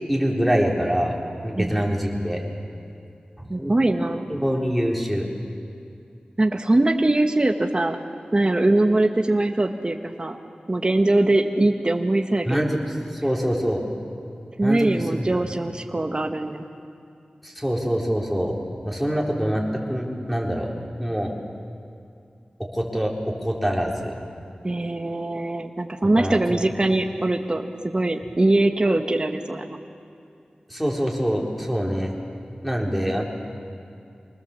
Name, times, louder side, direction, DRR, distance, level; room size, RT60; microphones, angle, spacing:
voice 1, 0.1-1.1 1.4-2.4 3.4-3.7 4.3-5.2 12.5-12.8 13.1-13.8 14.6-14.9 17.4-18.6 18.8-19.6 19.9-20.7 21.0-21.3 22.7-24.1 26.2-26.6 30.7-32.1 32.6-33.2, equal, ahead, -2 dB, 4.2 m, -24 dB
voice 2, 3.5-4.2 6.4-8.0 8.3-10.4 10.7-12.7 14.6-16.6 24.6-29.8, right 2 dB, 35° right, 5 dB, 1.3 m, -22 dB
25.0 x 19.5 x 7.4 m, 2.5 s
wide cardioid pair, 65°, 3 cm